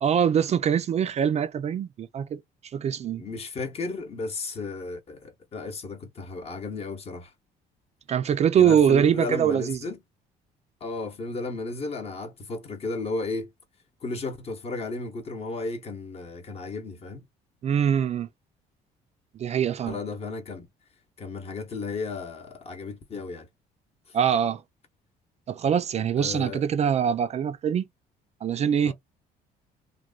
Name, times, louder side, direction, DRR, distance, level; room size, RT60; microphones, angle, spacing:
voice 1, 0.0-2.4 2.7-3.2 8.1-9.8 17.6-18.3 19.4-20.0 24.1-24.6 25.5-27.8 28.4-28.9, right 8 dB, 40° right, 0.4 m, -23 dB
voice 2, 3.2-7.3 8.6-10.0 10.8-13.5 14.0-17.3 19.9-20.7 21.2-23.5 26.1-26.6 28.8-28.9, left 3 dB, 35° left, 0.9 m, -34 dB
3.1 x 2.2 x 2.3 m
cardioid pair, 110°, 17 cm